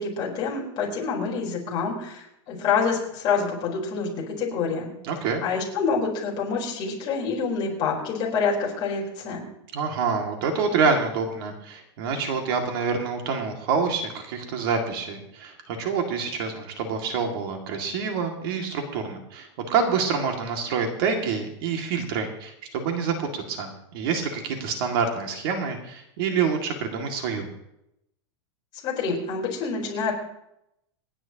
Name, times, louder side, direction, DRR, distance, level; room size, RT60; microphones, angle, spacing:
voice 1, 0.0-4.9 5.4-9.4 28.8-30.1, left 5 dB, 30° left, -2 dB, 4.2 m, -27 dB
voice 2, 5.0-5.4 9.7-27.5, right 5 dB, 50° right, 3 dB, 2.3 m, -27 dB
28.0 x 10.0 x 2.9 m, 0.81 s
supercardioid pair, 165°, 15 cm